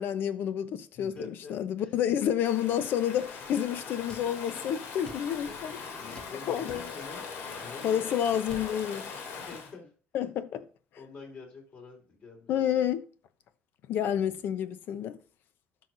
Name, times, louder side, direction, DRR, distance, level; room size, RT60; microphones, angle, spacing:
voice 1, 0.0-5.7 6.5-6.9 7.8-9.2 10.1-10.6 12.5-13.1 13.9-15.2, left 9 dB, 55° left, 0.8 m, -29 dB
voice 2, 0.9-2.0 5.4-5.6 6.0-8.2 9.3-9.9 10.2-10.3 11.0-12.5 14.1-14.3, left 3 dB, 40° left, 4.2 m, -47 dB
Stream / Ocean, 2.4-9.7, left 5 dB, 75° left, 2.8 m, -41 dB
sound 1, 4.1-4.3 5.0-5.3 6.1-6.3 6.7-6.9 8.5-8.7, left 2 dB, 20° left, 1.1 m, -46 dB
12.5 x 5.9 x 2.7 m
cardioid pair, 145°, 4 cm